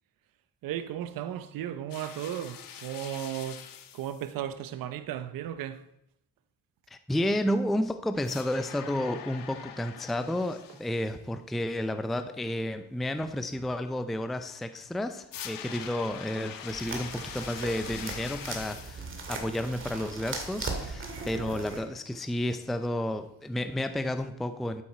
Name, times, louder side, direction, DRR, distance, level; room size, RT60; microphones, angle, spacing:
voice 1, 0.6-5.8, right 10 dB, 80° right, 0.8 m, -35 dB
sound 1, 1.9-4.3 8.2-11.2 15.3-19.2, left 9 dB, 80° left, 1.2 m, -43 dB
voice 2, 6.9-24.8, left 1 dB, ahead, 0.4 m, -31 dB
sound 2, 16.7-21.8, right 3 dB, 35° right, 2.1 m, -38 dB
12.5 x 8.7 x 4.3 m
cardioid pair, 145°, 34 cm